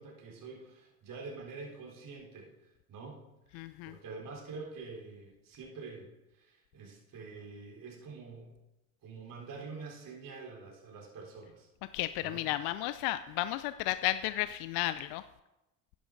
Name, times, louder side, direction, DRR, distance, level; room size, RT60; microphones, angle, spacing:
voice 1, 0.0-3.2 3.5-6.1 6.4-8.5 9.0-11.7 12.2-12.4, right 4 dB, 50° right, -2 dB, 3.8 m, -46 dB
voice 2, 3.5-3.9 11.9-15.2, left 15 dB, 60° left, 13 dB, 0.5 m, -33 dB
10.5 x 10.0 x 3.8 m, 0.97 s
hypercardioid pair, 70°, 43 cm